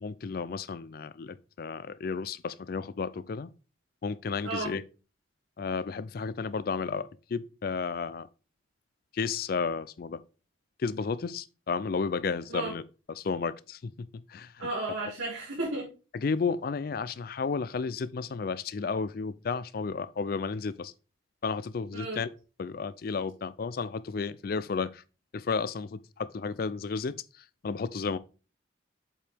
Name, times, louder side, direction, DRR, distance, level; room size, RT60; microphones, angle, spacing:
voice 1, 0.0-3.5 4.0-4.8 5.6-8.3 9.1-10.2 10.8-13.9 14.3-14.7 15.0-15.1 16.1-20.9 21.4-22.3 22.6-25.0 25.3-28.2, left 5 dB, 50° left, 0.4 m, -33 dB
voice 2, 14.6-15.8 21.9-22.2, right 2 dB, 90° right, 2.3 m, -33 dB
7.3 x 5.0 x 3.4 m
head